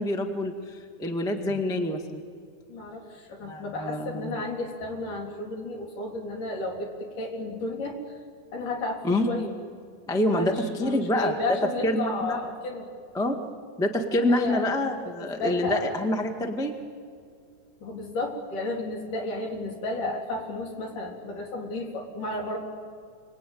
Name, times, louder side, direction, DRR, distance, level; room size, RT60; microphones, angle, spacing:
voice 1, 0.0-2.2 3.4-4.4 9.0-9.3 10.1-11.3 11.8-12.4 13.1-13.4 13.8-16.8, left 1 dB, 5° left, 4 dB, 0.7 m, -27 dB
voice 2, 2.7-8.2 8.5-9.5 10.3-12.9 14.3-14.8 15.2-16.0 17.8-22.6, left 2 dB, 70° left, 0 dB, 4.9 m, -32 dB
29.5 x 20.5 x 9.4 m, 2.3 s
omnidirectional pair, 3.8 m